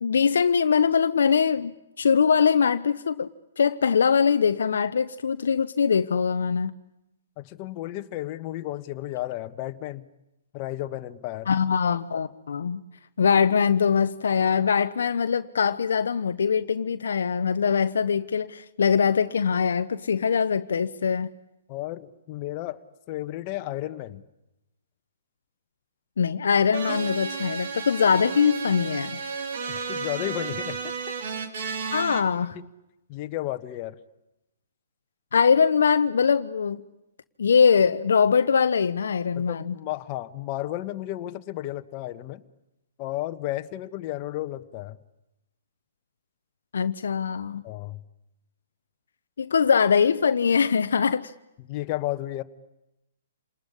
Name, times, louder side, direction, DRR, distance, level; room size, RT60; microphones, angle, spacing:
voice 1, 0.0-3.3 3.6-6.7 11.5-12.8 13.2-21.3 26.2-29.2 31.9-32.6 35.3-36.8 37.4-39.7 46.7-47.6 49.4-51.3, left 6 dB, 70° left, 0.9 m, -22 dB
voice 2, 7.4-10.0 10.5-11.5 21.7-22.8 23.1-24.2 29.7-31.1 32.5-32.7 33.1-34.0 39.3-42.4 43.0-45.0 47.6-48.0 51.6-52.4, left 15 dB, 35° left, 1.4 m, -33 dB
sound 1, 26.7-32.2, right 5 dB, 60° right, 3.3 m, -32 dB
28.5 x 20.0 x 10.0 m
hypercardioid pair, 130°, 0 cm